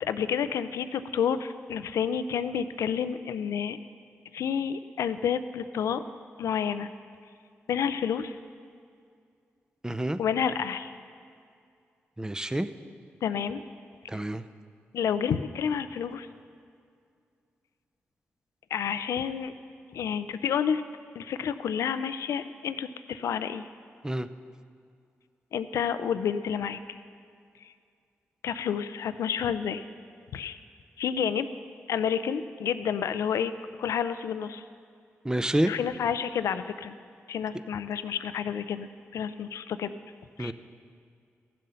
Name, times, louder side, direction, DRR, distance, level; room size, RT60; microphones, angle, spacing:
voice 1, 0.0-3.8 4.3-6.0 6.4-6.9 7.7-8.4 10.2-10.9 13.2-13.6 14.9-16.3 18.7-19.5 19.9-20.8 21.2-23.7 25.5-27.0 27.6-27.7 28.4-29.8 30.3-30.6 31.0-31.5 31.9-33.5 33.8-34.6 35.7-37.0 37.3-39.9 40.4-40.5, left 7 dB, 80° left, 12 dB, 0.4 m, -29 dB
voice 2, 9.8-10.2 12.2-12.7 14.1-14.4 24.0-24.3 35.2-35.7 40.4-40.5, right 1 dB, 15° right, 12 dB, 0.6 m, -28 dB
15.5 x 7.5 x 5.6 m, 2.3 s
supercardioid pair, 45°, 5 cm